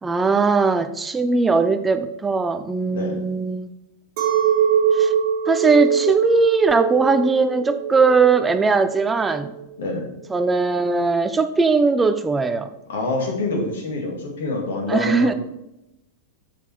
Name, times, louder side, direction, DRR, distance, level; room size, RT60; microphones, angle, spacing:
voice 1, 0.0-3.7 4.9-5.1 5.5-9.5 10.3-12.7 14.9-15.3, right 4 dB, 15° right, 10 dB, 0.6 m, -19 dB
voice 2, 2.9-3.3 9.8-10.1 12.9-15.4, left 2 dB, 60° left, 1 dB, 2.2 m, -26 dB
Chink clink, 4.2-9.6, right 8 dB, 45° right, 2.2 m, -22 dB
7.3 x 7.1 x 4.4 m, 0.88 s
figure-of-eight pair, 90°, 0 cm